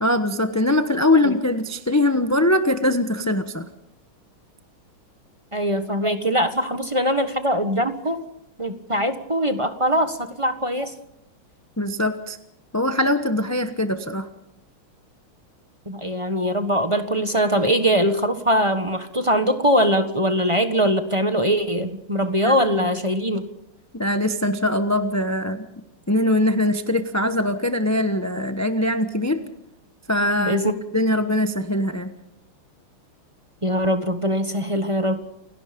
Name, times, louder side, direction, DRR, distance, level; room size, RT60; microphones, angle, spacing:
voice 1, 0.0-3.7 11.8-12.4 12.7-14.3 22.4-22.9 23.9-25.6 26.1-29.4 30.1-30.6 30.9-32.1, left 1 dB, 15° left, 8 dB, 0.7 m, -22 dB
voice 2, 5.5-8.2 8.6-10.9 15.9-23.5 30.4-30.7 33.6-35.2, equal, 15° right, 8 dB, 1.2 m, -22 dB
29.5 x 17.5 x 5.3 m, 0.84 s
omnidirectional pair, 2.3 m